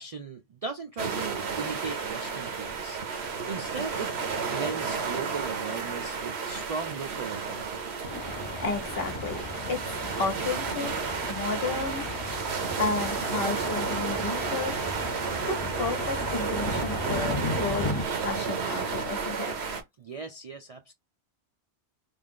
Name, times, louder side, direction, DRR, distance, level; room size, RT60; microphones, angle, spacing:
voice 1, 0.0-3.2 3.5-4.1 4.5-8.0 20.0-20.9, right 5 dB, 55° right, 0.4 m, -37 dB
sound 1, 1.0-19.8, right 5 dB, 75° right, 1.1 m, -32 dB
Thunder, 8.0-18.0, left 3 dB, 40° left, 0.4 m, -36 dB
voice 2, 8.6-10.9 11.3-12.4 12.8-14.7 15.5-19.5, left 3 dB, 65° left, 1.3 m, -32 dB
3.3 x 2.4 x 3.6 m
omnidirectional pair, 1.1 m